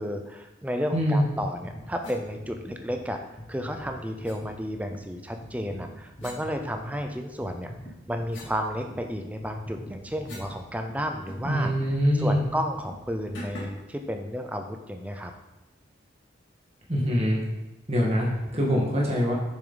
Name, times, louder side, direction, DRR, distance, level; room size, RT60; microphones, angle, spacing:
voice 1, 0.0-3.2 3.5-7.7 8.1-11.7 12.2-15.3 18.5-18.6, equal, 10° right, 4 dB, 0.6 m, -32 dB
voice 2, 0.9-1.2 11.4-12.4 16.9-17.4 17.9-19.3, equal, 35° right, -3 dB, 1.8 m, -24 dB
sound 1, 1.3-13.7 14.3-14.4, equal, 30° left, 1.2 m, -45 dB
sound 2, 2.0-2.2 4.2-4.4 6.2-7.2 7.7-10.6 10.9-11.0 11.3-11.9 12.3-12.5 13.3-13.9, left 1 dB, 90° left, 2.4 m, -45 dB
7.0 x 6.3 x 4.0 m, 1.0 s
head